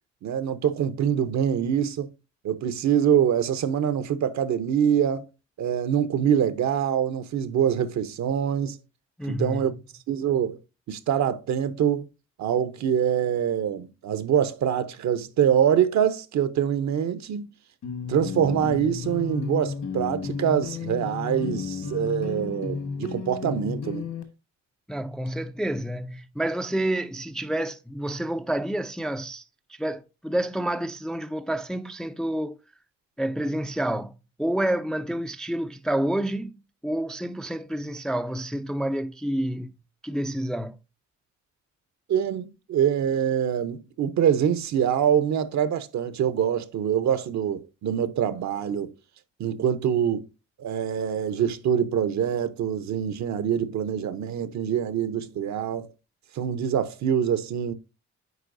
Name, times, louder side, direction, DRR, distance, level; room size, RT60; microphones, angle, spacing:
voice 1, 0.2-2.1 2.4-5.3 5.6-8.8 9.2-9.7 10.1-10.6 10.9-12.1 12.4-17.5 18.1-24.1 42.1-48.9 49.4-50.3 50.6-55.9 56.3-57.7, right 9 dB, 65° right, 0.8 m, -24 dB
voice 2, 9.2-9.7 24.9-29.4 29.7-32.6 33.2-34.1 34.4-36.6 36.8-39.8 40.0-40.8, right 1 dB, ahead, 0.3 m, -29 dB
sound 1, 17.8-24.2, left 5 dB, 65° left, 1.5 m, -33 dB
8.1 x 4.7 x 2.6 m
cardioid pair, 90°, 30 cm